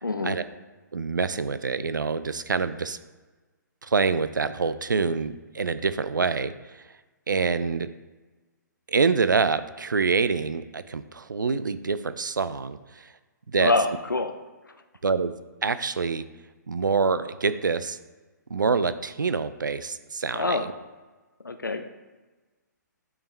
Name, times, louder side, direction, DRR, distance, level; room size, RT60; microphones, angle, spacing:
voice 1, 0.0-0.4 13.6-14.3 20.3-20.6 21.4-21.8, left 3 dB, 90° left, 7 dB, 0.7 m, -25 dB
voice 2, 0.9-3.0 3.8-6.5 7.3-7.9 8.9-13.0 13.5-13.7 15.0-15.3 15.6-16.2 16.7-18.0 18.5-20.7, right 4 dB, 80° right, 13 dB, 0.5 m, -26 dB
8.8 x 4.7 x 3.3 m, 1.3 s
figure-of-eight pair, 130°, 10 cm